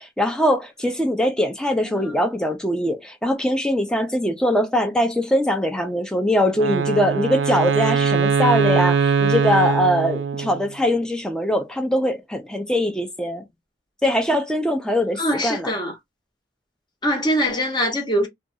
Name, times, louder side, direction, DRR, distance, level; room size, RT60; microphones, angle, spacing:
voice 1, 0.0-13.5 14.0-15.7, equal, 5° left, 0.4 m, -22 dB
Wind instrument woodwind instrument, 6.5-10.7, right 6 dB, 75° right, 0.3 m, -21 dB
voice 2, 15.2-15.9 17.0-18.3, equal, 25° left, 0.9 m, -23 dB
2.5 x 2.3 x 2.6 m
head